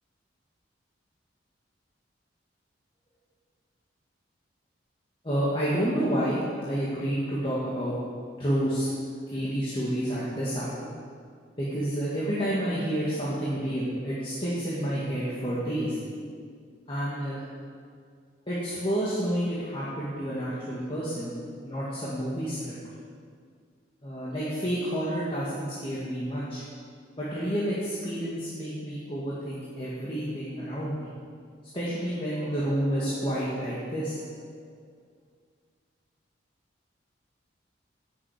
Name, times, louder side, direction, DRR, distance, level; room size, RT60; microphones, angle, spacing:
voice 1, 5.2-7.9 8.4-8.9 9.3-10.9 11.6-16.0 16.9-17.4 18.5-21.3 21.6-22.7 24.0-26.6 27.2-31.1 31.7-34.5, equal, 30° left, -8 dB, 1.9 m, -29 dB
16.5 x 7.4 x 5.0 m, 2.1 s
head